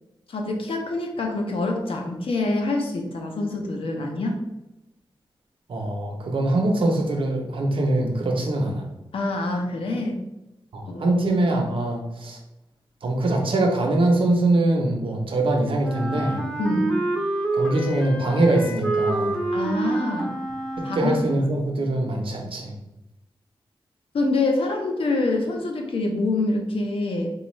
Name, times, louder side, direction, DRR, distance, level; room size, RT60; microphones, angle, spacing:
voice 1, 0.3-4.4 9.1-10.2 10.9-11.2 16.6-17.0 19.5-20.3 20.8-21.1 24.1-27.3, left 2 dB, 85° left, 2 dB, 0.6 m, -26 dB
voice 2, 5.7-8.9 10.7-12.4 13.0-16.5 17.5-19.4 20.8-22.7, right 2 dB, 75° right, 1 dB, 0.7 m, -23 dB
Wind instrument woodwind instrument, 15.8-21.6, right 2 dB, 10° left, 0.5 m, -27 dB
4.2 x 2.3 x 3.1 m, 0.94 s
wide cardioid pair, 125°, 9 cm